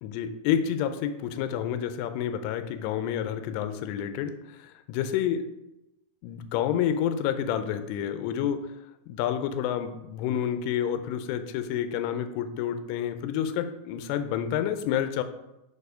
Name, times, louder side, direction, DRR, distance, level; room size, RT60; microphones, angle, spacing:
voice 1, 0.0-4.3 4.6-5.4 6.2-8.6 9.1-15.2, left 9 dB, 85° left, 9 dB, 3.0 m, -29 dB
6.8 x 4.6 x 4.9 m, 0.91 s
omnidirectional pair, 5.8 m